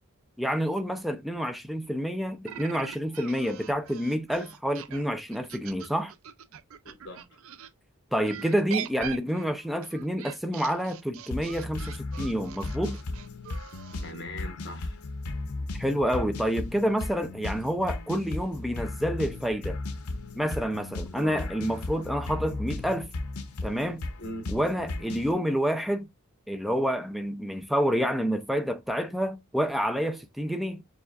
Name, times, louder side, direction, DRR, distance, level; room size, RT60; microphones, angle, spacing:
voice 1, 0.4-6.1 8.1-13.0 15.7-19.8 20.3-23.1 23.6-24.1 24.5-26.1 26.5-30.8, equal, ahead, 0.4 m, -28 dB
sound 1, 2.4-7.7 8.2-14.1, right 9 dB, 70° right, 0.4 m, -42 dB
voice 2, 6.8-7.4 14.0-15.0 21.1-21.5 24.2-24.5, left 1 dB, 55° left, 1.4 m, -40 dB
sound 2, 11.3-25.3, left 2 dB, 85° left, 0.7 m, -36 dB
6.8 x 2.4 x 2.3 m
head